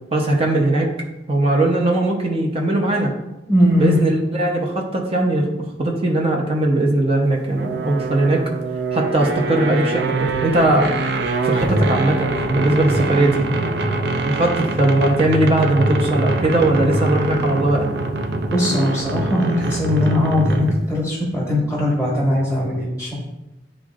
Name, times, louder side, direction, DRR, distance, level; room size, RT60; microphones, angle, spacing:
voice 1, 0.1-0.9 1.3-3.1 3.8-5.5 5.8-8.4 8.9-10.9 11.4-13.4 14.2-17.9, right 2 dB, 35° right, 0 dB, 0.9 m, -19 dB
voice 2, 3.5-4.0 18.5-23.1, left 1 dB, 10° right, -6 dB, 1.4 m, -20 dB
sound 1, 7.6-20.9, right 2 dB, 65° right, 0.6 m, -23 dB
11.0 x 3.7 x 2.5 m, 0.96 s
head